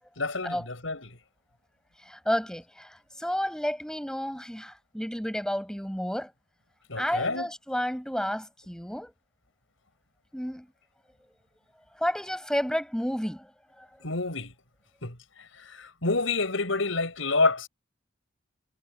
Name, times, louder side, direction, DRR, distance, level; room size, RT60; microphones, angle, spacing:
voice 1, 0.2-1.1 6.9-7.5 14.0-14.5 15.0-17.7, left 3 dB, 75° left, 6.5 m, -28 dB
voice 2, 2.0-6.3 7.0-9.1 10.3-10.7 11.9-13.9, equal, 5° left, 7.4 m, -31 dB
head